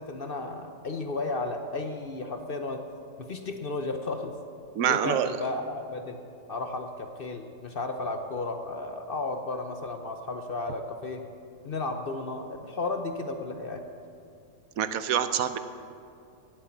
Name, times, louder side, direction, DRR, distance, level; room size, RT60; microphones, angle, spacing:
voice 1, 0.0-2.8 3.2-4.3 4.9-6.2 6.5-11.2 11.6-13.8, left 3 dB, 50° left, 6 dB, 0.6 m, -33 dB
voice 2, 4.7-5.3 14.8-15.6, right 9 dB, 65° right, 11 dB, 0.9 m, -26 dB
18.0 x 8.2 x 7.1 m, 2.6 s
omnidirectional pair, 1.9 m